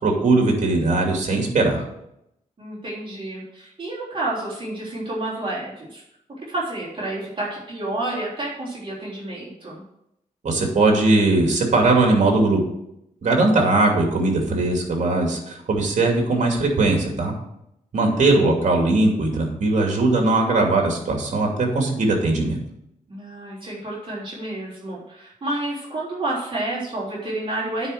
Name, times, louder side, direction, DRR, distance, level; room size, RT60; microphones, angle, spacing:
voice 1, 0.0-1.8 10.4-12.6 13.2-17.3 17.9-22.6, right 2 dB, 60° right, 1 dB, 2.6 m, -19 dB
voice 2, 2.6-6.0 6.5-9.8 18.0-18.4 23.1-27.9, right 2 dB, 40° right, -6 dB, 3.5 m, -30 dB
9.8 x 4.8 x 6.5 m, 0.80 s
wide cardioid pair, 105°, 14 cm